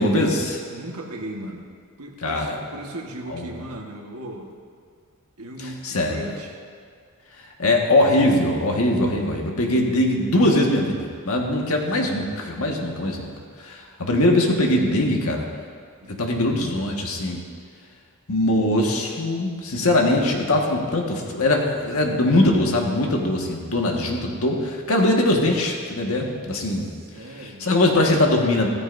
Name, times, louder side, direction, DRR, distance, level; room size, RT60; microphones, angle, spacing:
voice 1, 0.0-0.6 2.2-2.6 3.3-3.4 5.6-6.3 7.4-13.3 13.6-15.5 16.1-17.4 18.3-26.9 27.4-28.7, left 1 dB, 70° left, 0 dB, 1.7 m, -21 dB
voice 2, 0.7-1.7 2.0-4.5 5.4-6.6 11.6-11.8 12.8-13.0 16.0-16.2 26.6-27.7, right 1 dB, 75° right, 1 dB, 1.5 m, -37 dB
15.5 x 14.0 x 2.7 m, 2.2 s
head